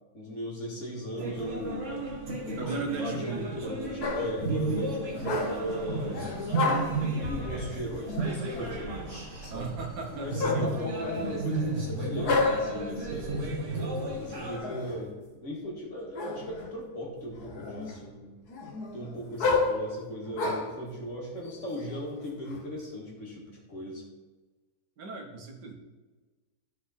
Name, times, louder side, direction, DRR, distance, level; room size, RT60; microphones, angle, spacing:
voice 1, 0.1-1.9 2.4-6.3 7.0-9.7 10.1-13.5 14.1-15.1 15.4-18.3 18.9-24.0, equal, 45° left, -2 dB, 2.3 m, -37 dB
sound 1, 1.2-14.6, right 2 dB, 45° right, 1.7 m, -33 dB
voice 2, 2.6-3.6 9.5-10.7 25.0-25.7, right 4 dB, 75° right, 2 dB, 1.8 m, -37 dB
sound 2, 4.0-4.5 5.2-5.8 6.1-7.1 8.0-8.8 10.4-11.4 12.2-12.8 14.3-15.0 16.1-16.7 17.2-18.0 18.5-20.8 21.5-22.6, left 3 dB, 65° left, 1.7 m, -31 dB
13.0 x 5.0 x 4.2 m, 1.2 s
omnidirectional pair, 1.8 m